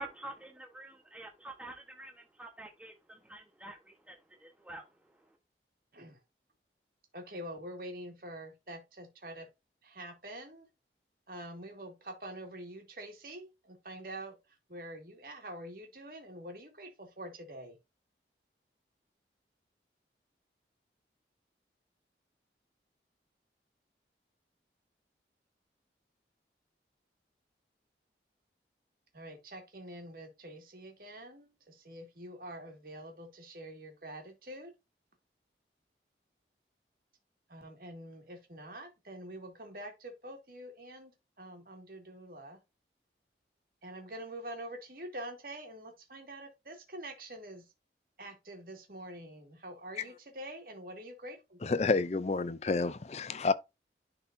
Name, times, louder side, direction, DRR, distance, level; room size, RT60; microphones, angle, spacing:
voice 1, 0.0-5.4, right 2 dB, 5° right, 1.1 m, -47 dB
voice 2, 7.1-9.5 9.8-10.7 11.3-17.8 29.1-34.7 37.5-41.1 41.4-42.6 43.8-47.7 48.2-51.9, right 1 dB, 50° right, 2.1 m, -46 dB
voice 3, 51.6-53.5, left 3 dB, 35° left, 0.5 m, -29 dB
10.5 x 4.3 x 2.7 m
head